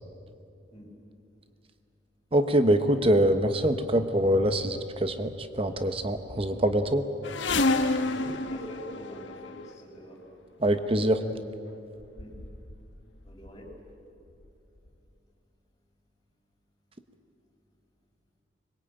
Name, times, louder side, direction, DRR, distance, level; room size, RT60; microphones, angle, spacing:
voice 1, 2.3-7.0 10.6-11.2, right 1 dB, 30° right, 9 dB, 1.2 m, -24 dB
sound 1, 7.2-9.7 10.7-10.9 11.7-11.8 12.0-12.9 13.2-13.7 14.4-14.5 14.9-15.0, left 2 dB, 75° left, 1.3 m, -29 dB
voice 2, 8.0-10.2 12.2-12.3 13.2-13.7, equal, 20° left, -4 dB, 5.5 m, -43 dB
24.5 x 22.0 x 9.1 m, 2.6 s
head